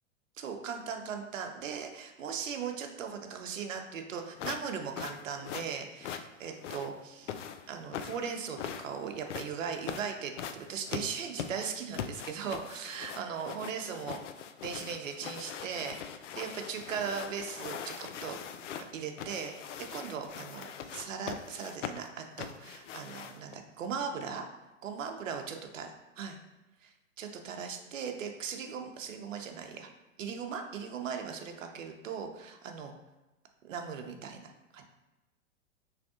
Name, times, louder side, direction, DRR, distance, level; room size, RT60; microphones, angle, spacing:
voice 1, 0.4-7.4 7.7-14.2 14.6-18.4 18.9-24.4 24.8-25.9 26.2-26.4 26.8-29.9 30.2-32.9 33.6-34.8, right 6 dB, 75° right, 4 dB, 0.9 m, -38 dB
sound 1, 4.4-23.5, left 8 dB, 65° left, 0.5 m, -41 dB
6.0 x 3.5 x 2.4 m, 1.1 s
hypercardioid pair, 120°, 39 cm